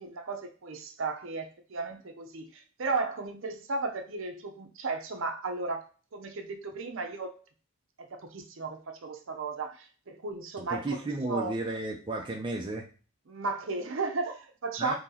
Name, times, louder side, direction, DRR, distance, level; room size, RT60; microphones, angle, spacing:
voice 1, 0.0-5.8 6.1-7.4 8.0-11.0 11.3-11.5 13.3-14.9, right 3 dB, 60° right, 5 dB, 0.6 m, -35 dB
voice 2, 10.6-12.9 14.8-14.9, right 2 dB, 20° right, 0 dB, 0.4 m, -33 dB
2.8 x 2.8 x 3.8 m, 0.37 s
head